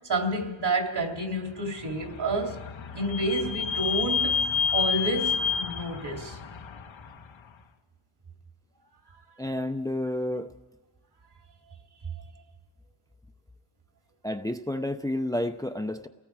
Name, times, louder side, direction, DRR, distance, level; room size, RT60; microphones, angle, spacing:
voice 1, 0.1-2.6 2.9-4.4 4.7-6.4, right 2 dB, 60° right, 2 dB, 3.0 m, -29 dB
Vehicle / Squeak, 1.7-7.3, left 7 dB, 85° left, 1.3 m, -29 dB
voice 2, 9.4-10.5 14.2-16.1, left 1 dB, 10° left, 7 dB, 0.6 m, -30 dB
30.0 x 18.5 x 4.8 m, 1.2 s
wide cardioid pair, 105°, 45 cm